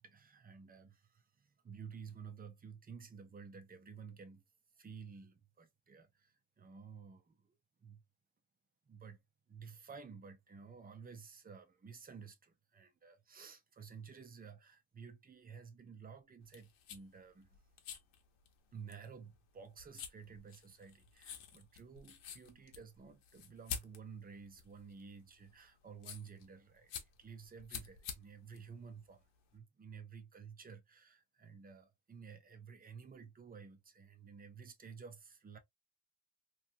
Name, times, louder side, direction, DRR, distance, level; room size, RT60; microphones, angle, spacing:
voice 1, 0.0-4.4 4.8-8.0 8.9-9.2 9.5-17.6 18.7-29.3 29.5-35.6, right 6 dB, 20° right, 0.3 m, -53 dB
sound 1, 16.4-29.6, left 7 dB, 80° left, 0.8 m, -50 dB
2.8 x 2.3 x 2.5 m
wide cardioid pair, 170°, 49 cm